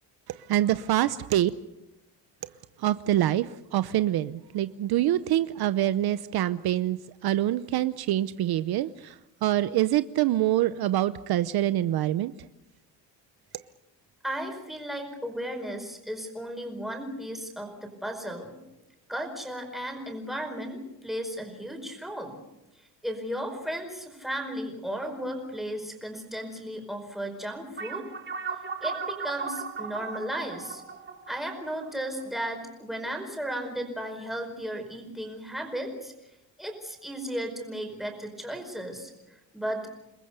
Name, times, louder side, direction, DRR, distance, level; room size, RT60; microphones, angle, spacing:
voice 1, 0.3-1.5 2.8-12.3, right 13 dB, 60° right, 13 dB, 0.8 m, -25 dB
voice 2, 14.2-18.6 19.1-22.4 22.7-28.1 28.8-30.8 31.3-36.1 36.6-39.9, equal, ahead, 2 dB, 5.0 m, -35 dB
sound 1, 27.8-32.6, right 5 dB, 25° right, 2.0 m, -36 dB
29.5 x 20.5 x 6.8 m, 0.93 s
cardioid pair, 170°, 42 cm